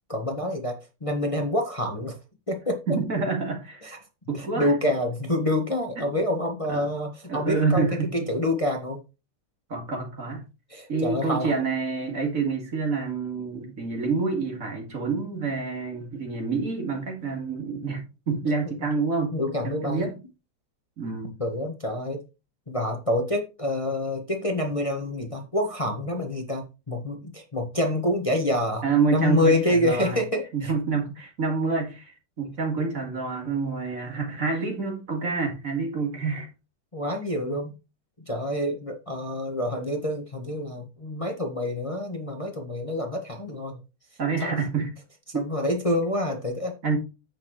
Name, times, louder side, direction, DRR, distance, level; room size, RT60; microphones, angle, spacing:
voice 1, 0.1-0.8 1.0-2.2 2.5-2.8 3.8-4.0 4.4-9.0 10.7-11.5 19.3-20.0 21.4-22.2 22.7-30.7 36.9-37.7 38.3-43.8 44.4-44.6 45.3-46.7, left 1 dB, 20° left, 1.4 m, -27 dB
voice 2, 2.9-3.9 4.3-4.7 6.0-6.1 6.7-6.9 7.3-8.3 9.7-10.5 10.9-19.4 19.6-20.2 21.0-21.3 28.8-30.2 30.5-36.5 44.2-44.9 45.3-45.4 46.8-47.0, right 4 dB, 50° right, 2.6 m, -27 dB
10.0 x 8.4 x 3.1 m
omnidirectional pair, 1.8 m